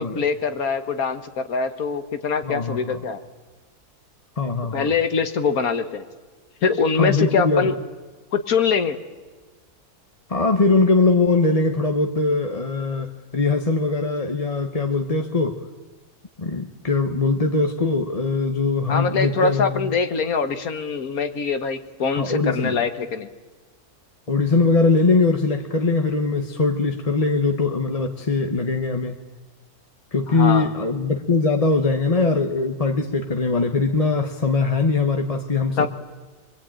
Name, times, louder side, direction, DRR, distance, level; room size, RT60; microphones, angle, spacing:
voice 1, 0.0-3.2 4.7-6.0 6.6-7.8 8.3-9.0 18.9-23.3 30.3-30.7 35.8-35.9, left 5 dB, 70° left, 9 dB, 1.8 m, -23 dB
voice 2, 2.4-3.0 4.4-4.9 7.0-7.7 10.3-15.6 16.4-19.9 22.1-22.8 24.3-29.2 30.1-35.9, left 3 dB, 25° left, 5 dB, 1.0 m, -21 dB
24.0 x 24.0 x 9.0 m, 1.3 s
omnidirectional pair, 1.6 m